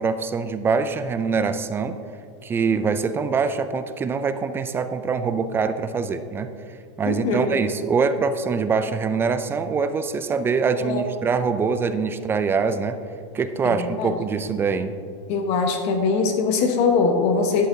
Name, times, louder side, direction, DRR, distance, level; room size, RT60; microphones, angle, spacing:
voice 1, 0.0-2.0 2.4-6.5 7.0-13.0 13.3-14.9, right 5 dB, 15° right, 11 dB, 0.3 m, -24 dB
voice 2, 7.0-7.5 10.8-11.0 13.6-14.1 15.3-17.7, left 4 dB, 45° left, 4 dB, 1.1 m, -22 dB
11.5 x 10.0 x 2.7 m, 2.4 s
supercardioid pair, 140°, 16 cm